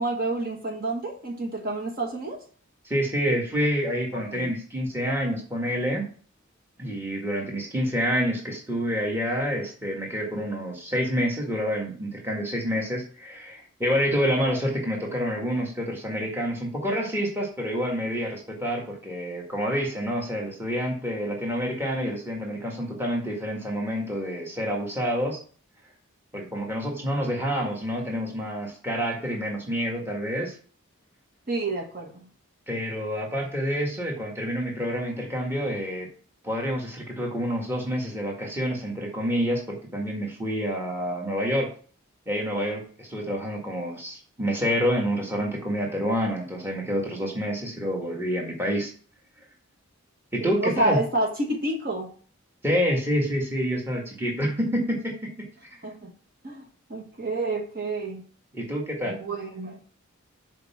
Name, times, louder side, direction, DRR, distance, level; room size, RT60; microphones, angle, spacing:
voice 1, 0.0-2.4 4.1-4.5 31.5-32.1 50.4-52.1 55.8-56.1 56.4-56.6 56.9-58.2 59.0-59.8, right 2 dB, 45° right, 1 dB, 1.4 m, -29 dB
voice 2, 2.8-6.1 6.8-25.4 26.3-30.6 32.7-36.1 36.4-41.7 42.3-48.9 50.3-51.0 52.6-55.3 58.5-59.2, equal, 10° right, -1 dB, 1.7 m, -28 dB
6.9 x 4.6 x 5.7 m, 0.43 s
head